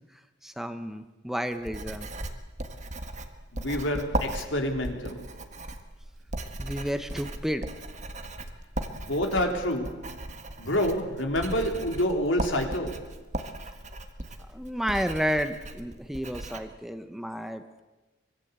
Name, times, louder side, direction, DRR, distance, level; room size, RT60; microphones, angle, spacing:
voice 1, 0.4-2.1 6.6-7.7 14.5-17.8, equal, ahead, 1.0 m, -31 dB
Writing, 1.5-16.6, right 1 dB, 40° right, 1.8 m, -37 dB
voice 2, 3.5-5.4 8.9-10.2 10.6-13.2, equal, 85° left, 3.7 m, -28 dB
24.5 x 22.0 x 8.3 m
head